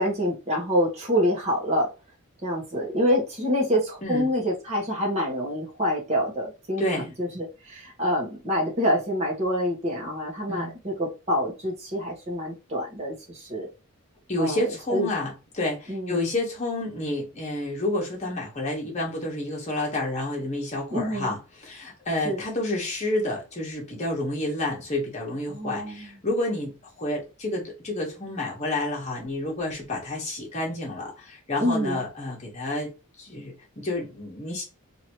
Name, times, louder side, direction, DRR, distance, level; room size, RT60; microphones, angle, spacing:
voice 1, 0.0-1.9 2.4-6.8 7.2-13.7 14.4-14.6 14.9-15.1 15.9-16.2 20.9-21.3 22.2-22.4 25.5-26.2 31.6-32.0, equal, 30° right, 1.1 m, -26 dB
voice 2, 14.3-32.9 33.2-34.6, left 1 dB, 30° left, 1.1 m, -29 dB
2.9 x 2.7 x 2.9 m
head